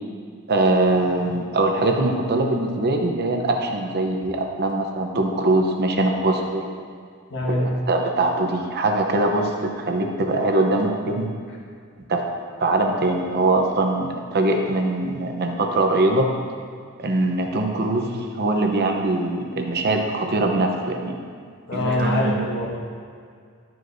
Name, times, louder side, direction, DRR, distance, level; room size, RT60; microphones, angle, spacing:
voice 1, 0.5-6.6 7.4-7.6 7.9-11.3 12.1-12.2 12.6-16.3 17.0-18.1 18.4-21.2 21.7-22.4, right 2 dB, 45° right, 3 dB, 0.8 m, -22 dB
voice 2, 7.3-7.7 21.7-22.8, left 1 dB, 55° left, -3 dB, 1.6 m, -24 dB
11.5 x 7.8 x 2.7 m, 2.1 s
head